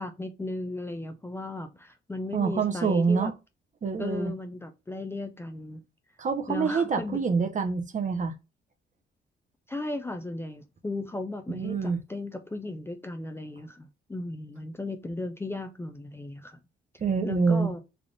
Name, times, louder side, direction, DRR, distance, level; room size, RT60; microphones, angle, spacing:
voice 1, 0.0-3.3 4.0-5.8 6.5-7.2 9.7-16.6 17.2-17.8, left 2 dB, 10° left, 0.5 m, -36 dB
voice 2, 2.3-3.3 3.8-4.3 6.2-8.3 11.5-12.0 17.0-17.7, right 5 dB, 40° right, 0.8 m, -26 dB
3.4 x 2.4 x 3.8 m
cardioid pair, 90°, 20 cm